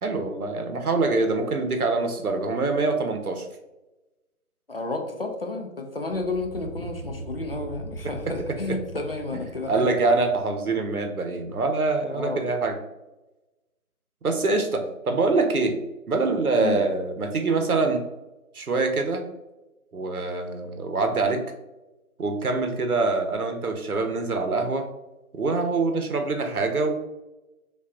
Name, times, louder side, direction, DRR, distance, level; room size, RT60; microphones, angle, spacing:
voice 1, 0.0-3.5 8.7-8.8 9.7-12.8 14.2-15.8 16.1-18.0 18.5-19.2 19.9-21.4 22.2-24.9 25.3-26.9, right 3 dB, 80° right, 5 dB, 0.8 m, -24 dB
voice 2, 4.7-9.9 12.1-12.5 16.6-16.8, left 3 dB, 45° left, 3 dB, 0.5 m, -31 dB
sound 1, 6.0-11.3, right 1 dB, 35° right, 0.5 m, -40 dB
5.3 x 2.3 x 2.5 m, 1.0 s
figure-of-eight pair, 155°, 43 cm